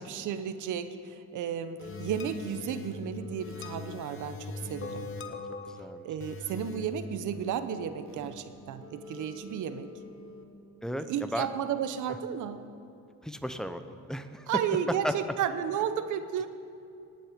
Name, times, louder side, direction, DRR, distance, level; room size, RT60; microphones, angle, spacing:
voice 1, 0.0-5.1 6.0-9.9 11.1-12.6 14.5-16.5, right 8 dB, 80° right, 11 dB, 0.9 m, -33 dB
sound 1, 1.8-10.4, left 3 dB, 45° left, 1.1 m, -42 dB
voice 2, 5.7-6.1 10.8-11.5 13.2-14.5 15.0-15.2, equal, ahead, 9 dB, 0.7 m, -35 dB
18.5 x 7.7 x 5.2 m, 2.6 s
cardioid pair, 90°, 30 cm